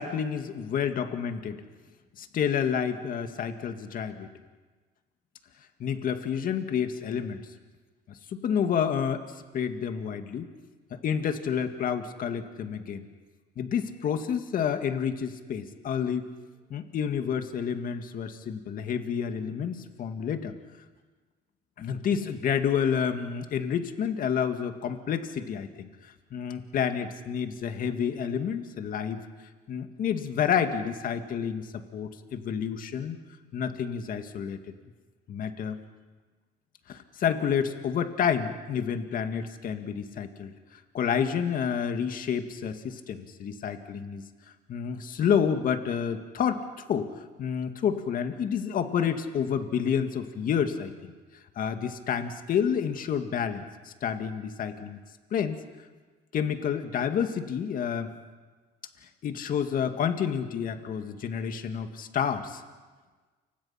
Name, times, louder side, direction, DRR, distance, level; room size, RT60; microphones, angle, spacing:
voice 1, 0.0-1.6 2.2-4.3 5.8-7.4 8.1-9.2 9.5-10.5 10.9-13.1 13.6-16.3 16.7-20.5 21.8-29.2 29.7-33.2 33.5-34.6 35.3-35.8 36.9-44.2 44.7-47.1 47.4-51.1 51.6-55.0 55.3-55.6 56.3-58.1 59.2-62.6, left 7 dB, 55° left, 7 dB, 2.0 m, -29 dB
29.0 x 25.5 x 5.8 m, 1.3 s
cardioid pair, 110°, 17 cm